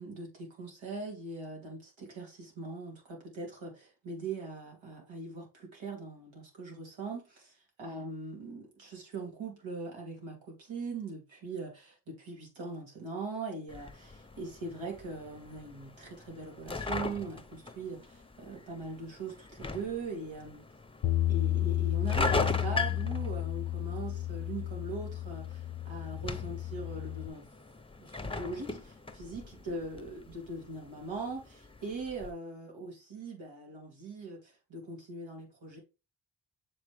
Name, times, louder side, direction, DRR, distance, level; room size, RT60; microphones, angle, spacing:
voice 1, 0.0-20.6 21.3-27.5 28.0-35.8, right 3 dB, 85° right, 3.0 m, -41 dB
sound 1, 13.7-32.3, left 3 dB, 10° left, 0.6 m, -40 dB
Bass guitar, 21.0-27.3, left 13 dB, 90° left, 0.7 m, -32 dB
7.2 x 4.4 x 3.4 m
wide cardioid pair, 95°, 45 cm